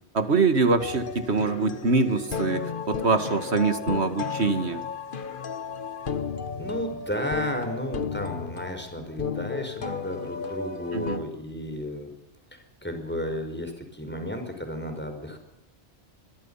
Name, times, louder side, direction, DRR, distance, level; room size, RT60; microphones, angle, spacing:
voice 1, 0.1-4.8 10.9-11.2, right 4 dB, 70° right, 9 dB, 2.3 m, -24 dB
sound 1, 0.8-11.2, left 6 dB, 50° left, 1.2 m, -34 dB
voice 2, 6.6-12.1 12.5-15.4, left 1 dB, 10° left, 5 dB, 5.3 m, -33 dB
25.5 x 23.5 x 5.8 m, 0.83 s
omnidirectional pair, 1.2 m